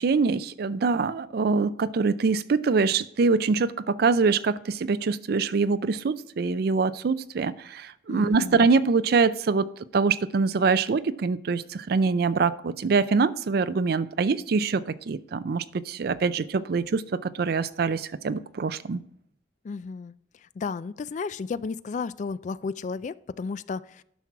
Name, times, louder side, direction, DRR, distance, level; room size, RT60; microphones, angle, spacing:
voice 1, 0.0-9.7 9.9-19.0, right 4 dB, 60° right, 15 dB, 0.4 m, -24 dB
voice 2, 8.1-8.6 19.6-20.1 20.4-24.0, left 4 dB, 45° left, 17 dB, 0.3 m, -33 dB
11.0 x 6.0 x 4.6 m, 0.69 s
head